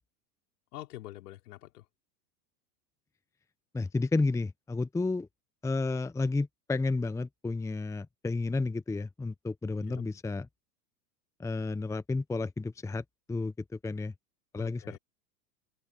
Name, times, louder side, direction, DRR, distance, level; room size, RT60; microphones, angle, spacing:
voice 1, 0.7-1.8 9.8-10.1 14.5-15.0, left 16 dB, 65° left, 5.0 m, -46 dB
voice 2, 3.7-5.3 5.6-10.5 11.4-14.1 14.5-15.0, left 3 dB, 5° left, 0.9 m, -32 dB
open air
hypercardioid pair, 100°, 50 cm